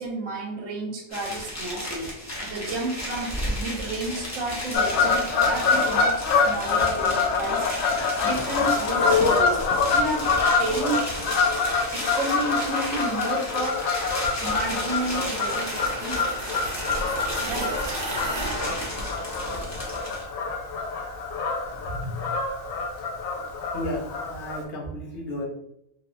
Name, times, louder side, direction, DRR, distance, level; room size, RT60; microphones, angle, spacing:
voice 1, 0.0-2.1 2.4-7.7 8.2-9.6 9.9-10.3 10.6-11.0 11.9-13.8 14.4-16.5 17.4-17.7, right 2 dB, 80° right, 0 dB, 0.9 m, -31 dB
sound 1, 1.1-20.2, equal, 25° left, 0.4 m, -34 dB
Fowl / Bird vocalization bird call bird song, 4.7-24.6, left 4 dB, 85° left, 1.0 m, -25 dB
sound 2, 14.5-19.7, right 2 dB, 60° right, 0.4 m, -36 dB
voice 2, 23.7-25.4, left 1 dB, 55° left, -1 dB, 0.8 m, -33 dB
3.0 x 2.0 x 2.4 m, 0.77 s
omnidirectional pair, 1.4 m